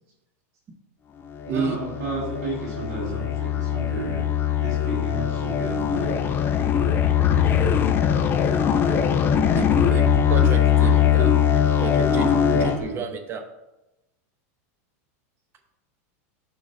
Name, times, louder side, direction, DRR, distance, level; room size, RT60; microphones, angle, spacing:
sound 1, 1.4-12.8, left 8 dB, 25° left, 0.4 m, -21 dB
voice 1, 1.5-4.3 4.6-6.2 7.0-7.8 8.1-8.5 10.8-11.3 11.8-13.0, right 2 dB, 80° right, -7 dB, 2.4 m, -33 dB
voice 2, 9.5-11.4 11.7-13.4, right 4 dB, 30° right, 6 dB, 0.8 m, -31 dB
11.0 x 3.7 x 2.6 m, 0.97 s
supercardioid pair, 130°, 8 cm